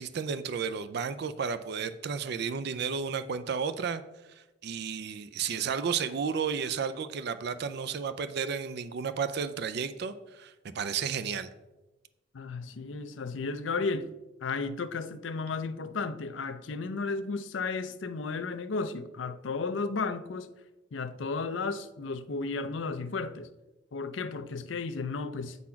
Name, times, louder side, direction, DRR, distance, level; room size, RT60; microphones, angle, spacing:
voice 1, 0.0-4.0 4.6-11.5, right 6 dB, 60° right, 0.4 m, -32 dB
voice 2, 12.3-14.1 14.4-20.5 20.9-23.5 23.9-25.6, left 4 dB, 75° left, 0.5 m, -33 dB
8.5 x 4.1 x 5.7 m
head